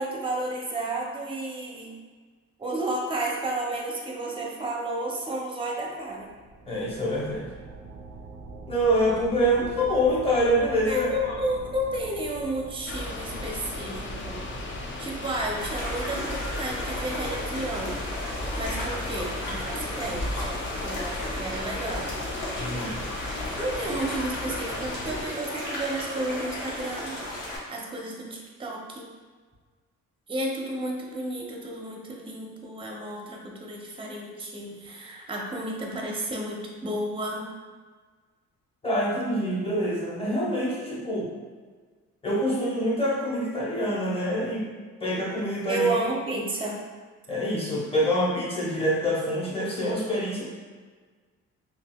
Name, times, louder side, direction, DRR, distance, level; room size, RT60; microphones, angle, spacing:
voice 1, 0.0-2.0 2.6-6.3 10.9-14.4 15.0-18.0 18.6-22.1 23.6-27.2 27.7-29.1 30.3-37.5 45.7-46.8, right 1 dB, 15° right, -1 dB, 0.6 m, -32 dB
sound 1, 6.0-18.8, right 3 dB, 80° right, 0.5 m, -45 dB
voice 2, 6.7-7.5 8.7-11.3 22.6-23.0 38.8-41.3 42.2-44.7 45.0-45.9 47.3-50.4, equal, 20° left, -5 dB, 1.0 m, -26 dB
sound 2, 12.9-25.2, left 2 dB, 40° left, 0.5 m, -35 dB
sound 3, 15.6-27.6, left 1 dB, 90° left, 1.0 m, -35 dB
3.8 x 2.5 x 2.2 m, 1.5 s
cardioid pair, 90°, 30 cm